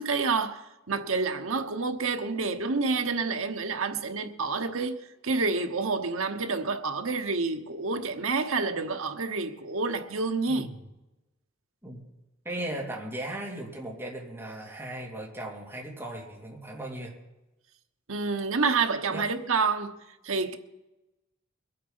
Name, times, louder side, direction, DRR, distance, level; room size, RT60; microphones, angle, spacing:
voice 1, 0.0-10.7 18.1-20.0 20.2-20.6, right 4 dB, 75° right, 1.1 m, -28 dB
voice 2, 10.5-10.8 11.8-12.0 12.4-17.1 19.1-19.3, right 1 dB, 10° right, 2.6 m, -37 dB
22.0 x 8.4 x 5.6 m
head